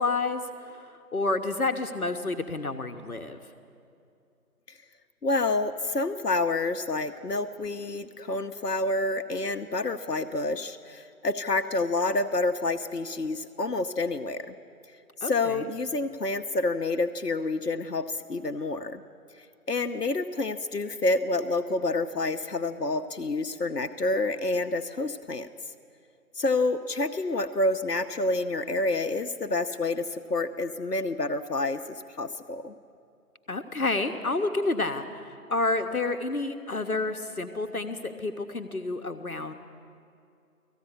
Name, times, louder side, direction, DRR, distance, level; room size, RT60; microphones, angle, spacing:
voice 1, 0.0-3.4 15.2-15.7 33.5-39.5, left 3 dB, 65° left, 7 dB, 1.3 m, -29 dB
voice 2, 5.2-14.5 15.2-19.0 19.3-25.5 26.3-32.7, left 2 dB, 80° left, 7 dB, 1.0 m, -28 dB
18.5 x 15.0 x 9.7 m, 2.6 s
figure-of-eight pair, 165°, 47 cm